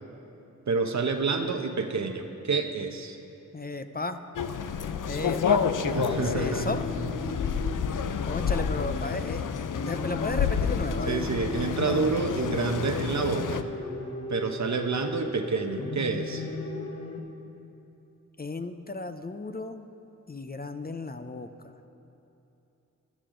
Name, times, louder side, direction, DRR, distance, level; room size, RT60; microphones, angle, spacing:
voice 1, 0.7-3.2 5.8-6.8 11.1-13.7 14.3-16.4, right 4 dB, 60° right, 6 dB, 0.9 m, -28 dB
voice 2, 3.5-4.2 5.1-5.6 6.1-6.8 8.3-9.4 9.9-11.2 11.9-12.1 18.4-19.9 20.3-21.5, left 3 dB, 30° left, 8 dB, 0.6 m, -34 dB
sound 1, 4.3-13.6, left 7 dB, 75° left, 0.5 m, -29 dB
sound 2, 5.2-17.2, left 2 dB, 50° left, 1.2 m, -37 dB
13.5 x 12.5 x 3.8 m, 2.9 s
cardioid pair, 50°, 31 cm